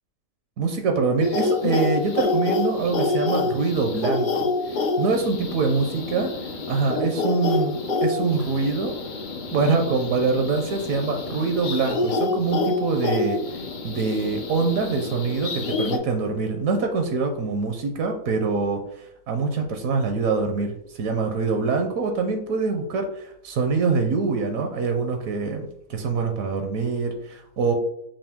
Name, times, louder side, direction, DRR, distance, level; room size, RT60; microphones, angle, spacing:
voice 1, 0.6-4.5 5.0-6.3 6.7-9.0 9.5-13.4 13.8-18.8 19.3-27.7, right 4 dB, 75° right, 5 dB, 1.0 m, -24 dB
sound 1, 1.2-16.0, left 3 dB, 75° left, 0.4 m, -27 dB
5.2 x 2.5 x 3.5 m, 0.73 s
omnidirectional pair, 1.5 m